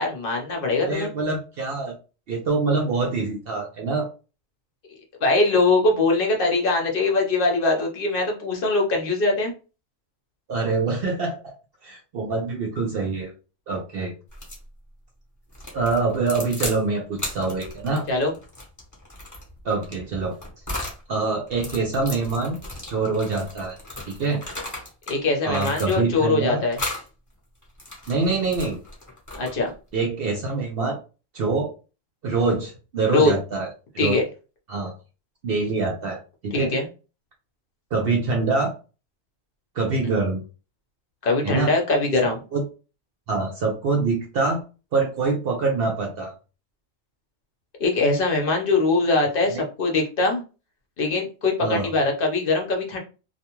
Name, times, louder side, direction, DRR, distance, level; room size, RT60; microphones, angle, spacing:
voice 1, 0.0-1.1 5.2-9.5 18.1-18.3 25.1-26.8 29.4-29.7 33.1-33.3 34.0-34.2 36.5-36.9 41.2-42.4 47.8-50.4 51.0-53.0, left 3 dB, 50° left, 1 dB, 0.8 m, -22 dB
voice 2, 0.8-2.0 2.3-4.1 10.5-11.6 11.8-13.3 13.7-14.1 15.7-18.1 19.6-20.3 21.1-22.6 22.9-23.8 24.1-24.4 25.4-26.6 28.1-28.8 29.9-31.0 31.3-31.7 32.2-33.7 33.9-34.1 34.7-34.9 35.4-36.7 37.9-38.7 39.8-40.4 41.4-41.7 42.5-42.6 43.3-44.6 44.9-46.3 49.5-49.6 51.6-51.9, right 3 dB, 65° right, 0 dB, 0.6 m, -25 dB
sound 1, 14.3-14.7 15.5-16.8 17.2-21.0 21.5-25.2 25.5-26.3 26.7-27.1 27.6-29.7, left 1 dB, 15° left, 0.7 m, -35 dB
2.4 x 2.3 x 2.9 m, 0.33 s
omnidirectional pair, 1.4 m